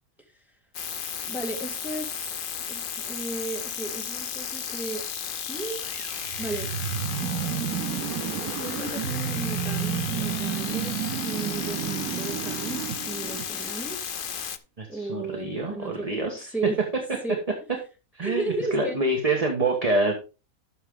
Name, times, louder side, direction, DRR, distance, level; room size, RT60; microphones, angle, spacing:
sound 1, 0.7-14.6, left 7 dB, 50° left, 0.7 m, -34 dB
voice 1, 1.2-5.1 5.5-6.1 6.4-6.7 7.2-8.1 8.4-14.0 14.9-16.3 16.5-16.8 17.2-17.4 18.2-19.0, right 2 dB, ahead, 1 dB, 2.1 m, -34 dB
sound 2, 5.8-13.9, right 11 dB, 80° right, 1.1 m, -31 dB
voice 2, 14.8-16.5 18.1-20.1, right 2 dB, 25° right, 2 dB, 1.4 m, -26 dB
11.5 x 6.7 x 3.7 m, 0.31 s
omnidirectional pair, 1.5 m